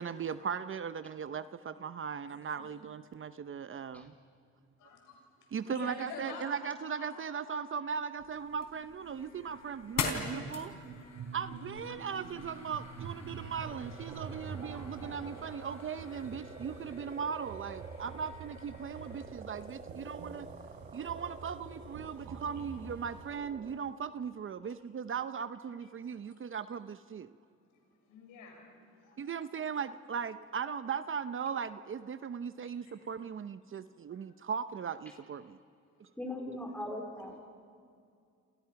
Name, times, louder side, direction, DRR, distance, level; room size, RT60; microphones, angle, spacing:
voice 1, 0.0-4.1 5.5-10.7 11.3-20.5 20.9-27.3 29.2-35.6 36.0-36.1, right 7 dB, 45° right, 12 dB, 0.8 m, -38 dB
voice 2, 2.3-2.7 4.8-5.2 5.6-6.5 6.8-7.3 11.1-11.7 19.5-19.7 24.5-24.7 25.8-26.4 27.7-28.7 29.0-29.8 32.6-33.0 33.6-34.2 35.8-36.0, left 4 dB, 90° left, 2 dB, 6.5 m, -50 dB
sound 1, 7.9-23.3, right 5 dB, 80° right, 4.4 m, -48 dB
sound 2, 8.3-19.3, left 5 dB, 65° left, 4.2 m, -44 dB
sound 3, 13.6-23.8, right 4 dB, 25° right, 1.7 m, -50 dB
voice 3, 36.2-37.4, left 1 dB, 5° left, 1 dB, 4.0 m, -39 dB
29.5 x 28.0 x 5.9 m, 2.3 s
cardioid pair, 90°, 30 cm